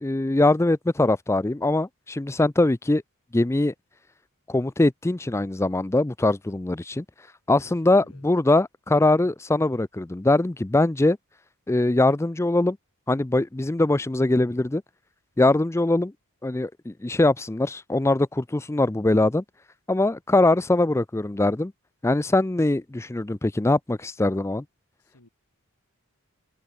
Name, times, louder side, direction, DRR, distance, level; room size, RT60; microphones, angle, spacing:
voice 1, 0.0-3.0 3.3-3.7 4.5-7.0 7.5-11.2 11.7-12.8 13.1-14.8 15.4-16.1 16.4-19.4 19.9-21.7 22.0-24.6, left 2 dB, 10° left, 0.4 m, -22 dB
voice 2, 7.6-8.3 25.0-25.3, left 1 dB, 85° left, 4.2 m, -56 dB
open air
head